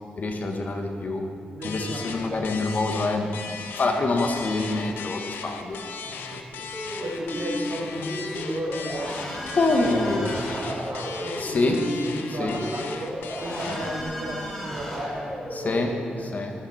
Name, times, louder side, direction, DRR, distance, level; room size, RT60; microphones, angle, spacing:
voice 1, 0.2-1.2 1.6-3.5 3.8-5.8 9.5-10.3 11.4-11.8 12.4-12.6 13.7-13.8 15.5-15.9 16.3-16.5, left 2 dB, 55° left, 3 dB, 1.8 m, -25 dB
voice 2, 1.5-2.4 6.0-6.6 7.0-9.1 9.5-13.1 13.4-16.3, right 1 dB, 60° right, -4 dB, 4.2 m, -34 dB
sound 1, 1.6-14.0, left 6 dB, 90° left, 0.9 m, -38 dB
sound 2, 6.7-15.9, equal, 15° left, 4.1 m, -34 dB
14.5 x 13.5 x 4.5 m, 2.5 s
cardioid pair, 60°, 3 cm